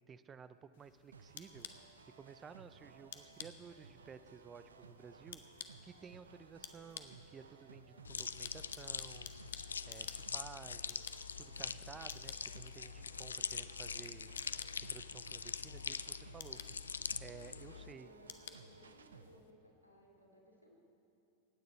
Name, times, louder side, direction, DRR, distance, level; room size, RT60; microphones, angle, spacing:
voice 1, 0.1-1.7 2.2-5.4 5.8-9.3 9.9-11.0 11.4-14.3 14.8-16.6 17.2-18.1, right 6 dB, 20° right, 13 dB, 0.6 m, -54 dB
sound 1, 0.7-19.5, left 9 dB, 55° left, 0.8 m, -55 dB
sound 2, 1.1-19.4, right 5 dB, 70° right, 0.6 m, -59 dB
sound 3, 8.0-17.9, left 6 dB, 75° left, 0.3 m, -43 dB
voice 2, 17.6-20.7, equal, 90° right, -1 dB, 2.7 m, -62 dB
25.5 x 9.4 x 4.3 m, 2.8 s
figure-of-eight pair, 90°, 0 cm